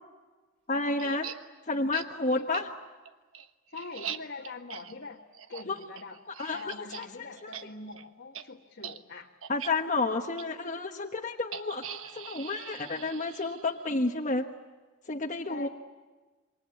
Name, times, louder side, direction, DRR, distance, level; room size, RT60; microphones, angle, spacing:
voice 1, 0.7-1.3 1.7-2.7 5.7-5.8 6.4-7.1 7.4-7.5 9.5-14.5 15.1-15.7, left 3 dB, 35° left, 1 dB, 1.3 m, -31 dB
sound 1, 1.0-1.4 1.9-2.1 2.5-2.6 3.1-7.1 7.4-7.6 7.9-8.0 8.3-8.4 8.8-9.0 9.4-9.7 10.4-10.5 11.5-13.9, right 8 dB, 80° right, 1.3 m, -41 dB
voice 2, 2.3-2.7 3.7-5.2 5.5-6.2 6.5-9.3 15.5-15.7, left 3 dB, 60° left, 0 dB, 1.6 m, -43 dB
27.5 x 24.5 x 8.3 m, 1.3 s
head